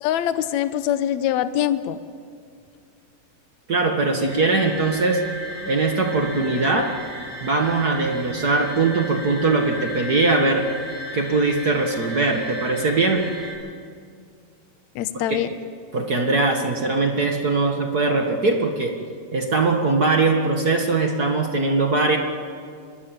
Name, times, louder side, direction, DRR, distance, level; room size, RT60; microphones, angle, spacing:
voice 1, 0.0-2.0 15.0-15.5, left 11 dB, 70° left, 12 dB, 1.8 m, -23 dB
voice 2, 3.7-5.2 5.7-6.9 7.4-10.7 11.1-13.2 15.9-18.9 19.3-22.2, right 3 dB, 50° right, 3 dB, 1.2 m, -21 dB
sound 1, 4.2-13.5, equal, 70° right, 9.5 m, -35 dB
24.5 x 20.0 x 9.1 m, 2.2 s
omnidirectional pair, 4.3 m